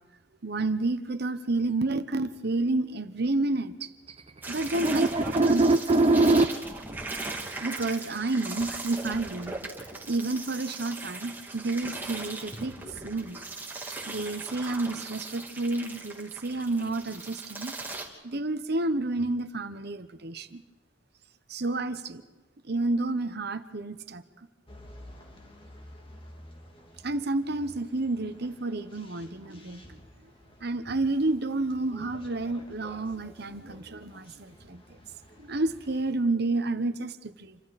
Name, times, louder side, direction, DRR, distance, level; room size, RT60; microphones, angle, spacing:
voice 1, 0.4-3.9 4.5-5.1 5.5-5.6 7.6-9.6 10.1-12.7 13.0-13.4 14.1-17.7 18.2-20.6 21.5-22.2 22.7-24.2 27.0-30.0 30.6-34.8 35.4-37.6, right 2 dB, 60° right, 11 dB, 1.2 m, -30 dB
voice 2, 4.1-6.5, right 2 dB, 30° right, 6 dB, 0.8 m, -23 dB
sound 1, 4.4-18.1, right 2 dB, 10° right, 2.8 m, -39 dB
sound 2, 24.7-36.1, equal, 30° left, 2.7 m, -51 dB
29.0 x 25.0 x 4.3 m, 1.2 s
head